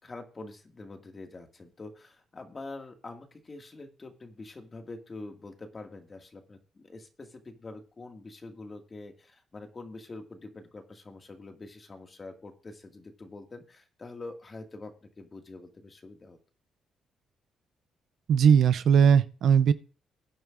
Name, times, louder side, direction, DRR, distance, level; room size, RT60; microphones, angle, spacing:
voice 1, 0.0-16.4, left 3 dB, 30° left, 4 dB, 2.0 m, -45 dB
voice 2, 18.3-19.7, right 7 dB, 65° right, 14 dB, 0.6 m, -19 dB
19.0 x 9.4 x 2.5 m, 0.37 s
cardioid pair, 90°, 0 cm